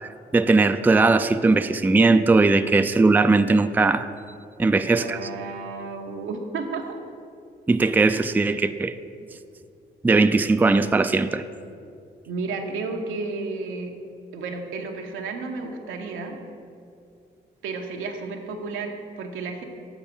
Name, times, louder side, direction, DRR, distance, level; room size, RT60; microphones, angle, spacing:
voice 1, 0.0-4.1 4.6-5.2 7.7-8.9 10.0-11.4, right 3 dB, 10° right, 10 dB, 0.3 m, -19 dB
voice 2, 4.7-7.0 12.3-13.9 14.3-16.4 17.6-19.6, right 4 dB, 90° right, 3 dB, 0.8 m, -32 dB
7.1 x 4.8 x 6.9 m, 2.4 s
cardioid pair, 65°, 20 cm